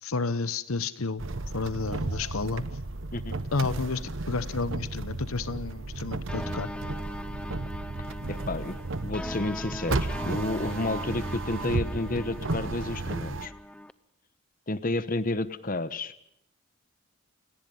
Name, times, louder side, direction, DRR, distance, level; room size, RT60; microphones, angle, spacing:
voice 1, 0.0-1.2 1.5-2.6 3.5-6.7, left 3 dB, 75° left, 15 dB, 1.0 m, -31 dB
sound 1, 1.2-13.5, right 2 dB, 60° right, 1.0 m, -34 dB
sound 2, 6.3-13.9, left 1 dB, 5° left, 0.7 m, -40 dB
voice 2, 8.3-8.8 9.0-13.5 14.7-16.1, left 2 dB, 40° left, 13 dB, 1.1 m, -31 dB
29.0 x 18.5 x 5.5 m, 0.75 s
head